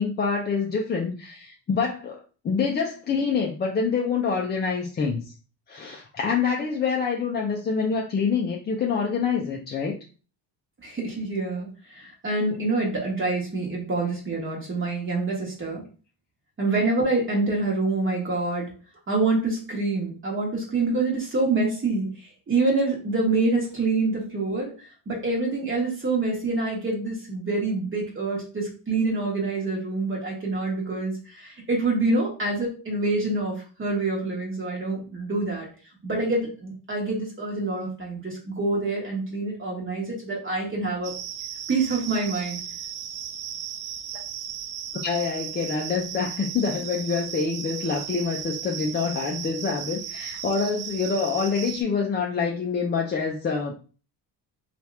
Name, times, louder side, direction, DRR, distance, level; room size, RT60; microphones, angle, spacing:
voice 1, 0.0-5.3 5.7-9.9 45.0-53.8, left 5 dB, 25° left, 0 dB, 0.3 m, -26 dB
voice 2, 10.8-15.8 16.6-18.7 19.1-22.1 22.5-35.7 36.0-41.1 41.7-42.6, right 3 dB, 30° right, -2 dB, 1.1 m, -26 dB
sound 1, 41.0-51.8, right 9 dB, 80° right, 0.6 m, -36 dB
2.8 x 2.4 x 3.1 m, 0.36 s
cardioid pair, 120°, 43 cm